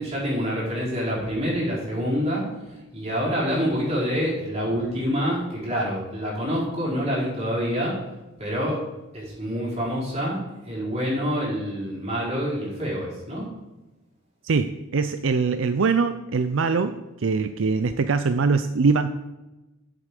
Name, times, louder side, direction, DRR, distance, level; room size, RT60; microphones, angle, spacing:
voice 1, 0.0-2.5 2.9-8.0 8.4-8.8 9.1-13.4, equal, 30° right, -6 dB, 4.7 m, -26 dB
voice 2, 14.4-19.1, right 4 dB, 65° right, 10 dB, 0.5 m, -23 dB
8.1 x 7.7 x 7.8 m, 1.0 s
head